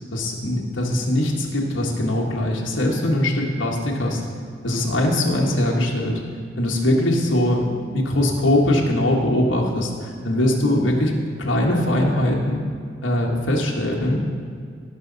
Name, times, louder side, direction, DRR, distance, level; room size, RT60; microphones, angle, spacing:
voice 1, 0.1-4.2 4.6-6.2 6.6-11.1 11.4-12.6 13.0-14.4, left 1 dB, 75° left, -2 dB, 1.5 m, -21 dB
17.5 x 6.4 x 4.0 m, 2.2 s
head